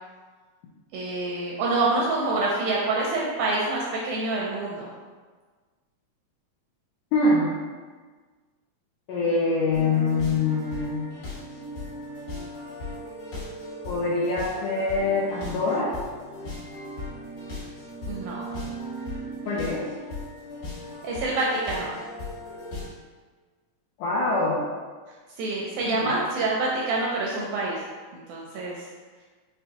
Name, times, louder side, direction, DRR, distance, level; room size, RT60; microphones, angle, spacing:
voice 1, 0.9-4.9 18.1-18.5 21.0-21.9 25.4-27.9 28.1-28.8, right 2 dB, 80° right, -3 dB, 1.7 m, -26 dB
voice 2, 7.1-7.5 9.1-11.1 13.9-15.9 19.5-19.8 24.0-24.6 25.9-26.1, left 3 dB, 80° left, -5 dB, 1.7 m, -24 dB
sound 1, 9.7-22.9, left 1 dB, 65° left, 2.2 m, -37 dB
5.4 x 2.1 x 2.8 m, 1.4 s
omnidirectional pair, 3.8 m